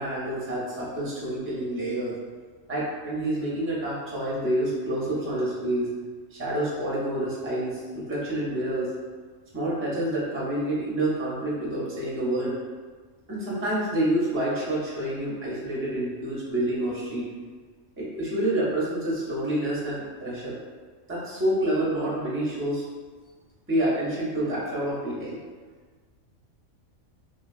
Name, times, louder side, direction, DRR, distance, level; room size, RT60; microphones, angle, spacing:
voice 1, 0.0-2.1 2.7-5.9 6.3-8.9 9.5-12.6 13.3-17.3 18.0-20.6 21.1-22.8 23.7-25.4, right 1 dB, 15° right, -7 dB, 0.5 m, -28 dB
3.1 x 2.3 x 2.3 m, 1.5 s
omnidirectional pair, 1.3 m